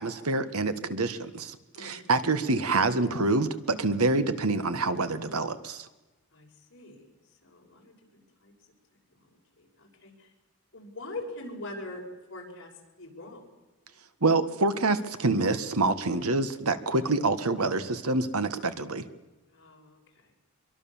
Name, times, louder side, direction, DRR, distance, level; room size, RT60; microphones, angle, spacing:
voice 1, 0.0-5.9 14.2-19.0, right 3 dB, 85° right, 11 dB, 1.6 m, -26 dB
voice 2, 1.7-2.4 6.3-7.1 7.4-8.5 9.6-10.3 10.7-12.0 12.3-12.7 13.0-13.5 19.5-20.3, left 2 dB, 55° left, 0 dB, 6.0 m, -43 dB
25.0 x 23.0 x 7.3 m, 1.1 s
head